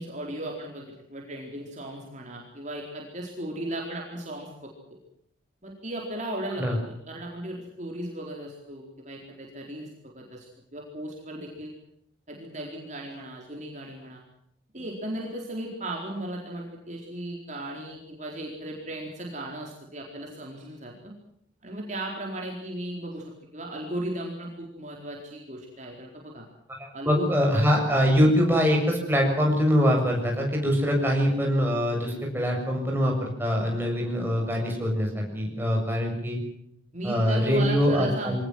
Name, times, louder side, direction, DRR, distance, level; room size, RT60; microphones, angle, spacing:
voice 1, 0.0-4.7 5.6-11.7 12.3-14.2 14.7-21.1 21.6-26.4 26.9-27.3 36.9-38.4, right 1 dB, 40° right, 0 dB, 4.2 m, -36 dB
voice 2, 26.8-36.4 37.0-38.4, equal, 10° right, 0 dB, 7.3 m, -23 dB
24.5 x 18.5 x 7.9 m, 0.73 s
head